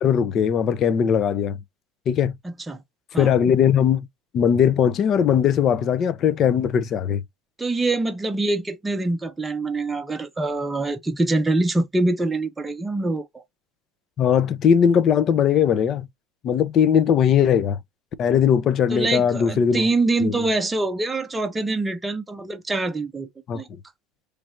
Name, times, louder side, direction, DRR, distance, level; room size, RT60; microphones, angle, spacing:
voice 1, 0.0-1.6 2.1-2.3 3.2-4.1 4.3-7.2 14.2-16.1 16.4-17.8 18.2-19.8 20.2-20.4 23.5-23.6, left 8 dB, 40° left, 0.5 m, -19 dB
voice 2, 2.4-2.8 3.1-3.3 7.6-13.4 18.9-23.3 23.5-23.7, right 2 dB, 10° right, 0.7 m, -24 dB
3.2 x 2.5 x 4.4 m
cardioid pair, 140°, 0 cm